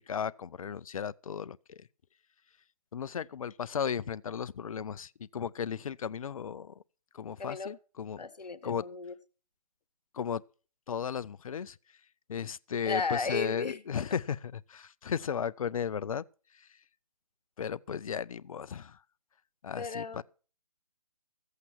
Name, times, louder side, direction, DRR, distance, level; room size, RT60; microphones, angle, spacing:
voice 1, 0.0-1.9 2.9-6.7 7.1-8.2 8.6-8.8 10.1-10.4 10.9-11.8 12.3-16.2 16.6-16.7 17.6-19.0 19.6-20.2, left 7 dB, 55° left, 0.6 m, -35 dB
voice 2, 7.4-7.7 8.2-9.1 12.8-14.0 19.8-20.2, left 4 dB, 75° left, 1.5 m, -35 dB
14.5 x 8.2 x 6.1 m
figure-of-eight pair, 150°, 21 cm